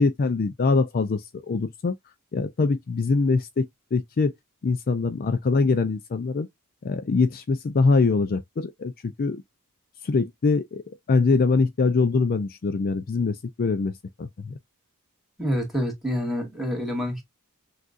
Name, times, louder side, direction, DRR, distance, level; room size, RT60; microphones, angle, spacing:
voice 1, 0.0-1.9 2.3-4.3 4.6-6.5 6.8-9.4 10.0-10.8 11.1-14.5, left 4 dB, 40° left, 0.4 m, -23 dB
voice 2, 15.4-17.2, equal, ahead, 1.9 m, -27 dB
6.1 x 2.5 x 2.5 m
head